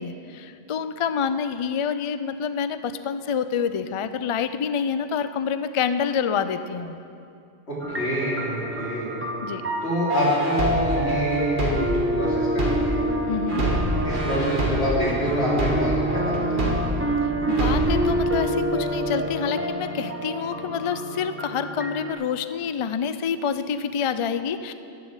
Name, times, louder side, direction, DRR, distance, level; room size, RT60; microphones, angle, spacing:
voice 1, 0.0-7.0 9.4-9.6 13.3-13.7 17.5-24.7, left 7 dB, 55° left, 11 dB, 0.3 m, -27 dB
voice 2, 7.7-9.1 9.8-13.0 14.0-16.9, equal, 85° left, -7 dB, 3.6 m, -26 dB
sound 1, 7.8-22.1, right 1 dB, 15° right, 0.8 m, -27 dB
sound 2, 10.1-13.1 13.5-17.1 17.5-18.1, equal, 50° right, 1.8 m, -27 dB
11.5 x 7.1 x 8.1 m, 2.5 s
omnidirectional pair, 1.1 m